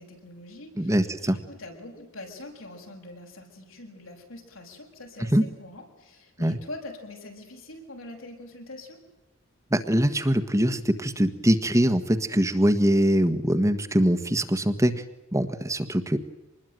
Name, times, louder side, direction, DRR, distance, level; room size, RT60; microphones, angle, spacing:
voice 1, 0.0-9.0, left 2 dB, 75° left, 2 dB, 6.9 m, -43 dB
voice 2, 0.8-1.4 5.3-5.4 6.4-6.6 9.7-14.9 15.3-16.2, equal, 15° right, 8 dB, 1.5 m, -23 dB
26.5 x 20.5 x 9.2 m, 1.0 s
head